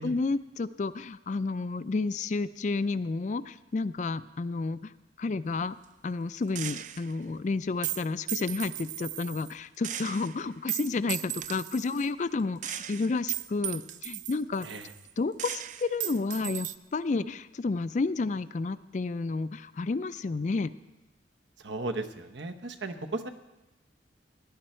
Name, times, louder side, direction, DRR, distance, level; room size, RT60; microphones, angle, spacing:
voice 1, 0.0-4.9 5.2-5.8 6.0-14.7 15.2-20.7, left 3 dB, 40° left, 15 dB, 0.4 m, -31 dB
Gunshot gunfire, 6.6-7.2 7.8-9.5 9.8-12.1 12.6-15.1 15.4-16.8, right 12 dB, 45° right, 0.4 m, -36 dB
voice 2, 21.6-23.3, right 2 dB, 80° right, 6 dB, 1.0 m, -36 dB
18.0 x 10.0 x 4.4 m, 1.0 s
head